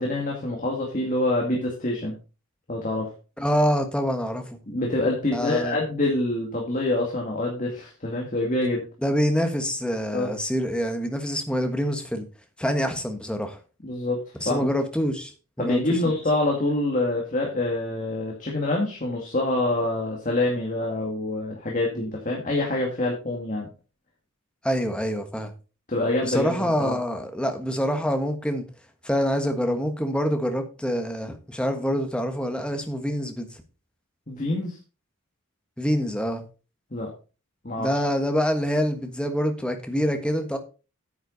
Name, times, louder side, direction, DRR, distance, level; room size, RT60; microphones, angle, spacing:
voice 1, 0.0-2.2 2.7-3.1 4.7-8.8 10.1-10.3 13.8-14.7 15.6-23.7 25.9-27.0 34.3-34.8 36.9-37.1 37.6-37.9, left 2 dB, 35° left, -1 dB, 2.2 m, -26 dB
voice 2, 3.4-4.4 5.3-5.8 9.0-12.3 12.6-13.6 14.4-15.3 15.6-16.0 24.6-25.5 26.2-28.7 29.0-33.5 35.8-36.4 37.8-40.6, equal, 5° left, 6 dB, 1.3 m, -26 dB
9.4 x 8.0 x 4.0 m, 0.33 s
head